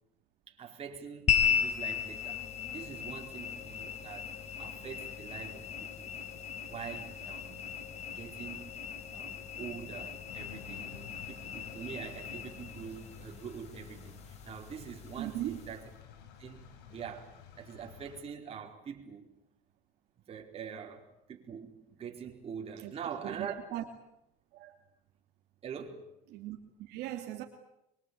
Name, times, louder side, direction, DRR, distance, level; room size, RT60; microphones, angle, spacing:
voice 1, 0.5-2.4 2.7-4.3 4.6-6.1 6.7-7.6 8.1-8.8 9.1-15.8 16.4-19.3 20.3-23.6 25.6-26.1, right 7 dB, 35° right, 4.7 m, -44 dB
sound 1, 1.3-15.9, left 8 dB, 35° left, 4.8 m, -37 dB
sound 2, 10.3-18.2, left 8 dB, 70° left, 5.4 m, -52 dB
voice 2, 15.2-15.6 22.8-23.8 24.5-24.8 26.3-27.4, right 13 dB, 65° right, 2.8 m, -39 dB
24.0 x 23.5 x 8.7 m
cardioid pair, 130°, 18 cm